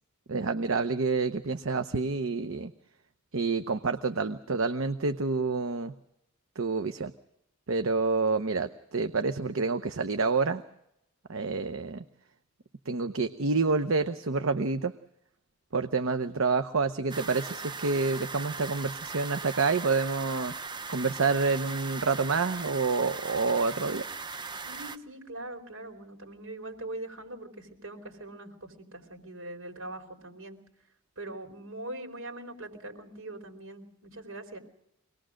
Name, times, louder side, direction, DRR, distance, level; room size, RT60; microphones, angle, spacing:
voice 1, 0.3-2.7 3.3-5.9 6.6-7.1 7.7-10.6 11.3-12.0 12.9-14.9 15.7-20.5 20.9-24.0, right 4 dB, 70° right, 8 dB, 0.8 m, -28 dB
sound 1, 17.1-25.0, right 4 dB, 20° right, 0.7 m, -39 dB
voice 2, 24.7-30.6 31.2-34.6, right 1 dB, 85° right, 3 dB, 4.5 m, -42 dB
24.5 x 19.5 x 6.4 m, 0.79 s
head